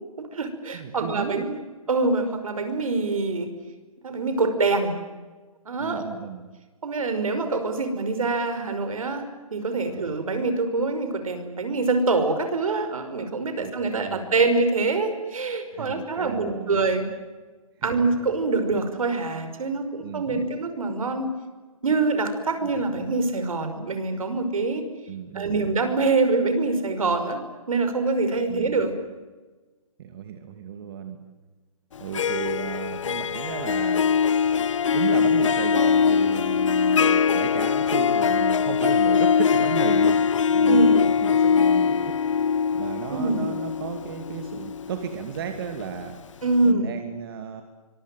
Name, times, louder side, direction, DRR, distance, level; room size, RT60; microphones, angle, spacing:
voice 1, 0.2-1.6 1.9-3.5 4.0-4.9 5.7-6.0 6.8-9.2 9.5-17.1 17.8-21.3 21.8-24.8 25.3-27.4 27.7-28.9 40.7-41.0 43.1-43.5 46.4-47.0, right 3 dB, 70° right, 9 dB, 5.7 m, -25 dB
voice 2, 0.7-1.4 5.8-6.5 9.8-10.1 13.6-14.3 15.7-16.8 17.8-18.1 20.0-20.5 22.6-22.7 25.1-25.6 28.5-28.8 30.0-31.2 32.0-34.1 34.9-40.2 40.5-42.2 42.7-46.2 46.6-47.6, right 7 dB, 40° right, 6 dB, 2.6 m, -34 dB
Harp, 31.9-45.9, left 6 dB, 60° left, 0.8 m, -22 dB
25.0 x 23.5 x 9.2 m, 1.3 s
hypercardioid pair, 155°, 18 cm